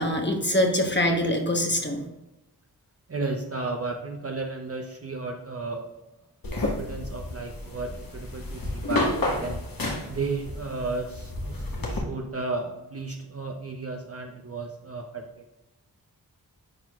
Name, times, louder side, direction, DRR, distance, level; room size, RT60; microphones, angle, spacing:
voice 1, 0.0-2.0, left 1 dB, 30° left, 2 dB, 1.0 m, -24 dB
voice 2, 3.1-5.9 6.6-9.7 10.1-15.4, right 3 dB, 40° right, 2 dB, 0.7 m, -34 dB
sound 1, 6.4-12.0, left 1 dB, 60° left, 1.3 m, -31 dB
9.8 x 4.5 x 2.4 m, 1.0 s
cardioid pair, 50°, 38 cm